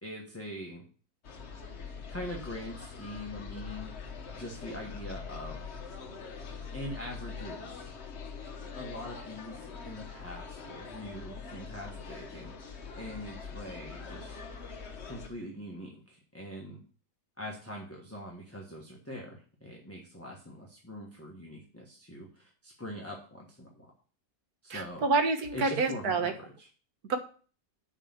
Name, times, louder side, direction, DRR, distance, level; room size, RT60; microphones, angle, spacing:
voice 1, 0.0-0.8 2.1-3.9 4.3-5.6 6.7-7.9 8.7-14.4 15.0-16.8 17.4-23.9 24.6-25.1 25.5-26.7, equal, 10° left, -2 dB, 1.3 m, -43 dB
sound 1, 1.2-15.3, left 5 dB, 50° left, 1.3 m, -43 dB
voice 2, 24.7-26.3 27.1-27.2, right 4 dB, 85° right, 7 dB, 1.7 m, -28 dB
6.5 x 5.5 x 7.1 m, 0.40 s
omnidirectional pair, 1.6 m